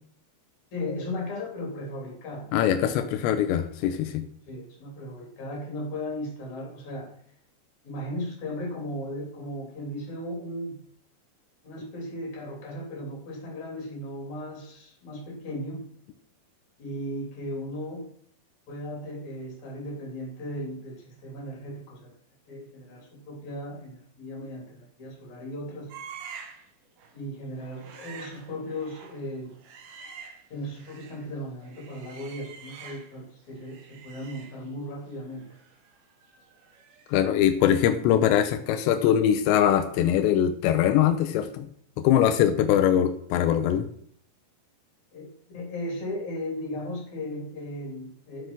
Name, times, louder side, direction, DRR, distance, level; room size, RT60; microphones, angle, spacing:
voice 1, 0.7-2.5 2.8-3.2 4.5-7.1 7.8-10.8 11.6-15.9 16.8-18.1 18.7-22.1 22.5-25.9 27.1-29.5 30.5-35.5 45.1-48.5, left 1 dB, 45° left, 0 dB, 4.1 m, -36 dB
voice 2, 2.5-4.2 37.1-41.7 42.0-43.9, left 10 dB, 85° left, 8 dB, 3.0 m, -22 dB
sound 1, 25.9-26.7 27.0-27.2 27.6-31.3 31.6-33.3 33.6-37.3 37.6-37.8, right 6 dB, 75° right, 3.8 m, -47 dB
11.5 x 7.9 x 6.0 m, 0.63 s
omnidirectional pair, 5.1 m